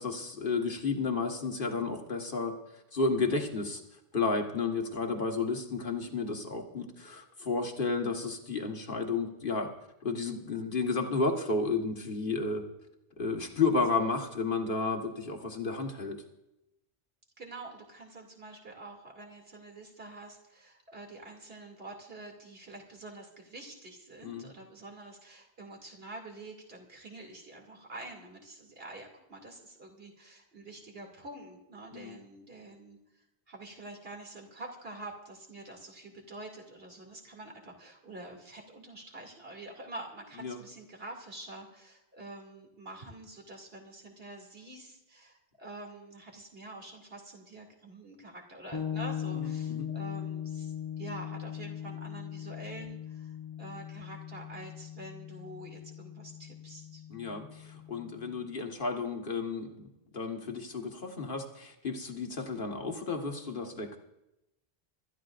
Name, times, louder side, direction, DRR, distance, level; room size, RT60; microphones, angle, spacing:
voice 1, 0.0-3.8 4.1-9.7 10.0-12.6 13.2-16.2 24.2-24.5 31.9-32.2 40.4-40.6 49.3-49.9 57.1-59.9 60.1-64.0, left 4 dB, 55° left, 3 dB, 1.7 m, -32 dB
voice 2, 17.4-33.0 33.5-57.0, right 2 dB, 65° right, 1 dB, 2.8 m, -47 dB
sound 1, 48.7-58.4, left 9 dB, 25° left, 0.7 m, -39 dB
25.5 x 13.0 x 2.5 m, 0.90 s
omnidirectional pair, 1.1 m